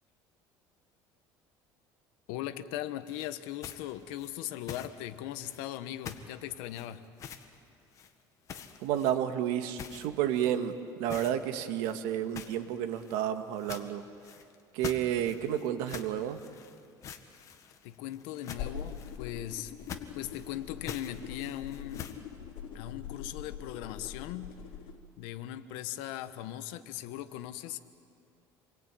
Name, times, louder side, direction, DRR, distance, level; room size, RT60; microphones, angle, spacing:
voice 1, 2.3-7.0 17.8-19.7 20.1-22.1 22.7-24.6 25.2-27.8, left 12 dB, 90° left, 11 dB, 1.3 m, -39 dB
sound 1, 3.1-5.0 5.4-5.8 6.0-6.3 6.6-7.6 7.9-8.1 8.5-9.4 9.8-10.7 11.0-11.3 11.7-22.2, left 8 dB, 40° left, 1.7 m, -46 dB
voice 2, 8.8-14.0 14.7-16.4, right 10 dB, 90° right, 7 dB, 1.8 m, -31 dB
Flying Blade, 18.5-25.0, left 8 dB, 70° left, 3.9 m, -43 dB
28.5 x 22.5 x 9.2 m, 2.4 s
cardioid pair, 150°, 8 cm